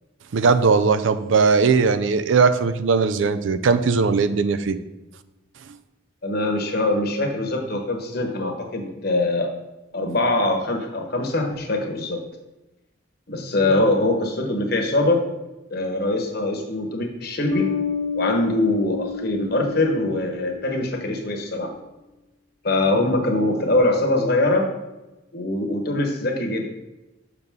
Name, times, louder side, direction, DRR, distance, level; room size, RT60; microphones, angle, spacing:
voice 1, 0.3-4.8, right 5 dB, 80° right, 12 dB, 0.4 m, -19 dB
voice 2, 6.2-9.5 9.9-12.2 13.3-15.2 15.7-17.7 18.1-21.7 22.6-24.7 25.3-26.6, left 2 dB, 55° left, 3 dB, 1.2 m, -23 dB
Bass guitar, 17.5-21.0, left 6 dB, 15° left, 0.9 m, -29 dB
6.6 x 6.0 x 3.6 m, 1.0 s
head